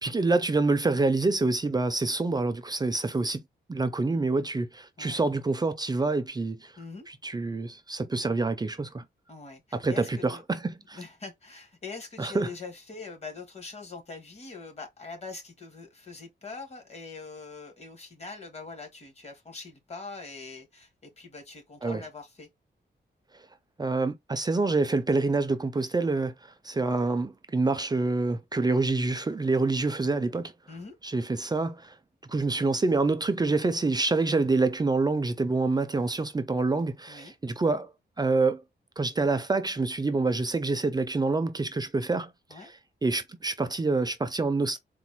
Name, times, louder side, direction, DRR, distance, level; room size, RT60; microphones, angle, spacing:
voice 1, 0.0-3.4 3.7-6.7 7.1-9.0 9.7-11.0 12.2-12.5 21.8-22.0 23.8-26.3 26.6-30.5 31.0-31.9 32.3-37.9 38.2-38.6 39.0-42.3 43.0-44.8, right 3 dB, 25° right, 0.4 m, -26 dB
voice 2, 6.8-7.1 9.3-10.4 10.9-22.5 30.7-31.0 37.1-37.3 42.5-42.7, left 4 dB, 35° left, 1.3 m, -43 dB
4.0 x 2.2 x 4.4 m
wide cardioid pair, 150°, 18 cm